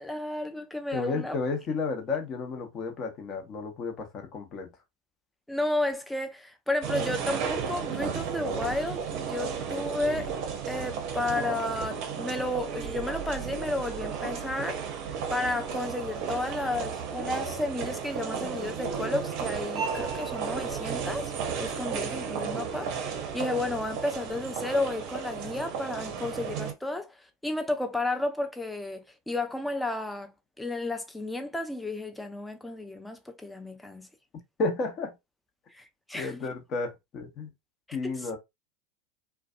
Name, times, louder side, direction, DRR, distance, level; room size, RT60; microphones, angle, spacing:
voice 1, 0.0-1.4 5.5-10.3 10.7-15.0 15.3-21.3 21.6-23.0 23.3-27.2 27.4-30.3 30.6-34.1 35.7-36.5 38.2-38.3, left 2 dB, 5° left, 0.5 m, -32 dB
voice 2, 0.9-4.7 34.6-35.1 36.1-37.5 37.9-38.4, left 3 dB, 40° left, 0.9 m, -32 dB
sound 1, 6.8-26.7, right 6 dB, 55° right, 0.6 m, -33 dB
2.5 x 2.2 x 2.4 m
hypercardioid pair, 85°, 0 cm